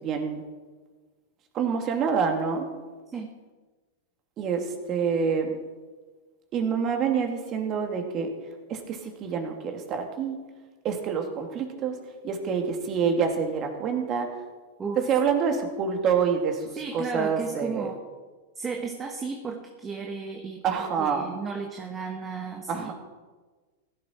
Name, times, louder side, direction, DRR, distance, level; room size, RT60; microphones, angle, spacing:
voice 1, 0.0-0.4 1.5-2.7 4.4-5.5 6.5-8.3 8.7-10.4 10.8-12.0 12.2-14.3 15.0-17.9 20.6-21.3 22.7-22.9, right 6 dB, 35° right, 4 dB, 2.4 m, -27 dB
voice 2, 16.8-18.0 18.6-22.9, right 5 dB, 20° right, 2 dB, 1.3 m, -34 dB
16.5 x 11.5 x 4.5 m, 1.3 s
hypercardioid pair, 115°, 0 cm